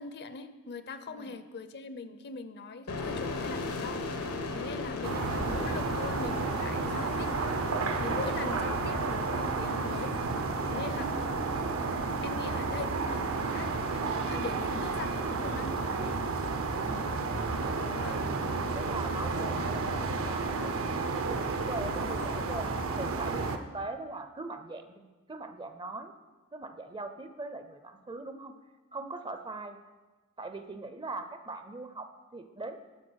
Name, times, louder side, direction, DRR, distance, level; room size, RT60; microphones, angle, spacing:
voice 1, 0.0-7.4 8.0-10.1 10.7-11.1 12.2-13.7 14.0-16.2 17.9-18.3, left 4 dB, 50° left, 11 dB, 0.6 m, -41 dB
sound 1, 2.9-16.3, left 3 dB, 80° left, 1.2 m, -40 dB
voice 2, 4.5-4.8 16.8-17.2 17.6-18.2 18.7-25.0 25.3-26.1 26.5-28.5 28.9-29.8 30.4-32.8, right 3 dB, 20° right, 9 dB, 0.5 m, -41 dB
sound 2, 5.0-23.6, right 3 dB, 65° right, 0.7 m, -31 dB
11.0 x 5.6 x 6.3 m, 1.3 s
head